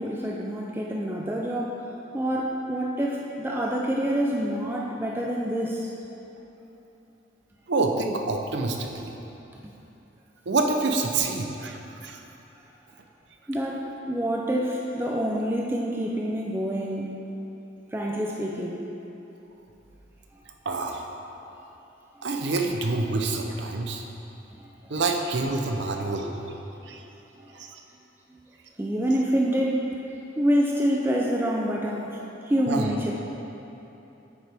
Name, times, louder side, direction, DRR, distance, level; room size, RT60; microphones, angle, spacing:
voice 1, 0.0-1.8 2.1-5.9 9.6-9.7 13.5-17.2 17.9-18.8 22.1-22.3 24.6-24.7 27.4-27.5 28.8-30.0 30.3-33.1, equal, 10° right, -2 dB, 0.4 m, -27 dB
voice 2, 7.7-9.2 10.5-12.2 20.6-21.2 22.2-24.0 24.9-26.3 26.8-27.0 27.5-27.8 32.7-32.9, right 3 dB, 60° right, 3 dB, 0.6 m, -27 dB
9.0 x 6.5 x 3.4 m, 3.0 s
head